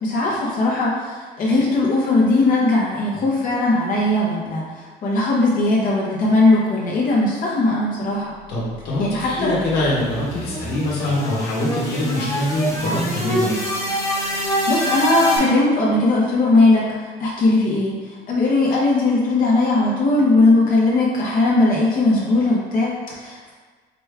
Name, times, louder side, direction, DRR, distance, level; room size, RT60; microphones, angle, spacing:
voice 1, 0.0-8.3 9.0-9.5 14.3-18.0 18.3-23.5, left 2 dB, 55° left, -5 dB, 0.9 m, -19 dB
voice 2, 8.5-13.6, left 1 dB, 80° left, -5 dB, 1.4 m, -24 dB
sound 1, 9.0-15.4, equal, 20° left, 1.1 m, -25 dB
5.0 x 2.2 x 3.4 m, 1.5 s
cardioid pair, 110°, 17 cm